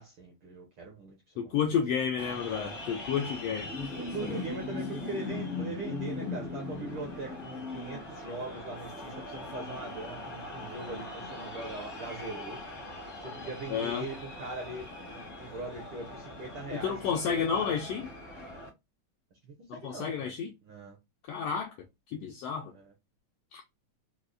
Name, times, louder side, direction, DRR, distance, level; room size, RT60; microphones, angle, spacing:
voice 1, 0.0-1.2 1.4-1.5 4.0-12.6 13.2-17.8 19.4-20.3 20.6-21.0 22.7-22.9, right 2 dB, 70° right, 1.2 m, -41 dB
voice 2, 1.4-3.7 4.3-4.4 13.7-14.1 16.7-18.1 19.7-20.5 21.3-21.7 22.1-22.7 23.5-23.6, left 7 dB, 90° left, 1.4 m, -31 dB
sound 1, 2.2-18.7, left 2 dB, 70° left, 0.7 m, -40 dB
5.1 x 2.1 x 2.3 m
omnidirectional pair, 3.4 m